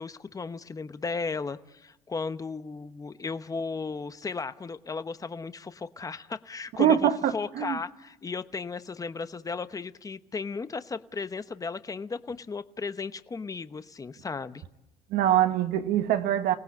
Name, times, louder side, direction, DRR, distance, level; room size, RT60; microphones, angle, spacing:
voice 1, 0.0-14.6, left 4 dB, 20° left, 1.0 m, -35 dB
voice 2, 6.8-7.8 15.1-16.5, right 10 dB, 75° right, 1.4 m, -24 dB
29.0 x 18.0 x 8.4 m
cardioid pair, 115°, 16 cm